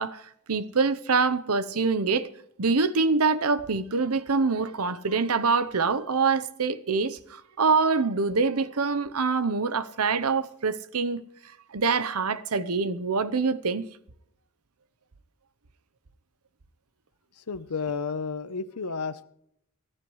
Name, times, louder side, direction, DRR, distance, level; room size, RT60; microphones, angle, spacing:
voice 1, 0.0-2.3 2.6-11.2 11.7-13.9, right 4 dB, 75° right, 0.9 m, -25 dB
voice 2, 17.5-19.2, left 5 dB, 85° left, 0.8 m, -31 dB
25.5 x 11.0 x 3.2 m
head